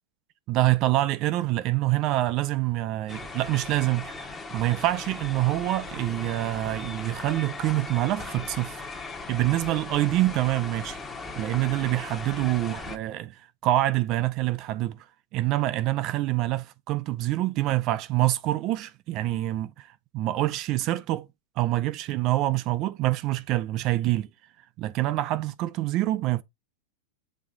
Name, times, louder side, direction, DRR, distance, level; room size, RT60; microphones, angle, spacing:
voice 1, 0.5-8.9 9.3-11.0 11.4-15.1 15.3-21.3 21.6-24.3 24.8-26.4, right 16 dB, 35° right, 0.4 m, -26 dB
sound 1, 3.1-13.0, left 3 dB, 10° left, 1.0 m, -38 dB
7.1 x 3.6 x 3.8 m
supercardioid pair, 155°, 0 cm